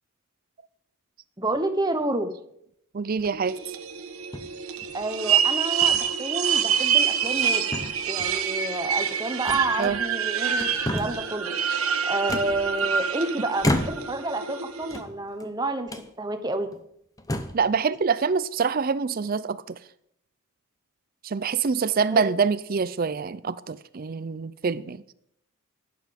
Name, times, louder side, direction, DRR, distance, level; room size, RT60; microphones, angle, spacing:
voice 1, 1.4-2.3 4.9-7.6 8.1-11.5 12.0-15.9 16.2-16.7 22.1-22.2, right 2 dB, 20° right, 1.0 m, -29 dB
voice 2, 2.9-3.6 9.8-10.0 17.5-19.8 21.2-25.0, right 5 dB, 40° right, 0.4 m, -25 dB
sound 1, 3.1-3.5 4.3-5.1 5.8-6.1 6.5-6.6 7.1-7.5 7.7-8.4 9.5-10.2 10.5-11.3 12.3-13.1 13.6-14.3 14.8-15.5 15.9-16.1 16.7-16.8 17.2-17.7, left 1 dB, 15° left, 0.8 m, -32 dB
sound 2, 3.4-15.0, right 7 dB, 75° right, 1.2 m, -26 dB
12.0 x 9.6 x 5.2 m
head